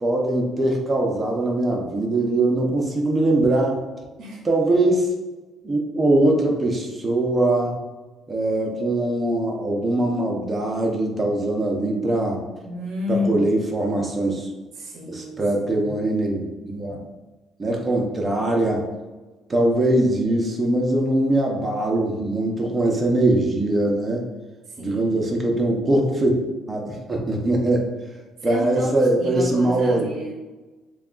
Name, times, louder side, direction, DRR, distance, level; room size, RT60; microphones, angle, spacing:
voice 1, 0.0-3.8 4.4-5.1 5.6-7.8 8.3-12.4 13.1-14.5 15.1-17.0 17.6-18.9 19.5-24.2 24.8-26.4 26.7-27.9 28.4-30.0, right 1 dB, 20° right, 0 dB, 0.7 m, -22 dB
voice 2, 12.6-13.4 14.7-15.9 24.7-25.5 28.4-30.4, left 2 dB, 50° right, -2 dB, 0.8 m, -31 dB
6.5 x 2.3 x 2.5 m, 1.2 s
cardioid pair, 135°, 0 cm